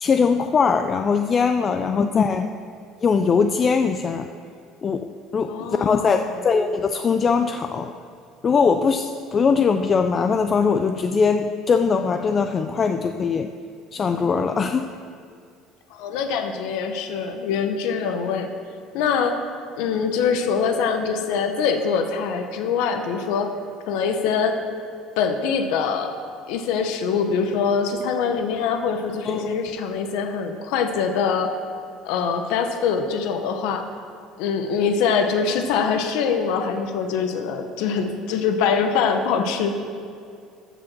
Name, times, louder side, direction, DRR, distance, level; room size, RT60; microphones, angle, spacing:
voice 1, 0.0-2.5 3.0-4.3 4.8-7.9 8.4-13.5 13.9-14.9 29.3-29.5, left 5 dB, 30° left, 7 dB, 0.4 m, -21 dB
voice 2, 1.7-2.1 5.5-6.4 15.9-18.5 18.9-19.4 19.8-23.5 23.9-24.6 25.2-26.1 26.5-31.5 32.0-33.8 34.4-39.8, left 6 dB, 80° left, 6 dB, 0.9 m, -24 dB
14.0 x 5.0 x 6.1 m, 2.3 s
cardioid pair, 135°, 0 cm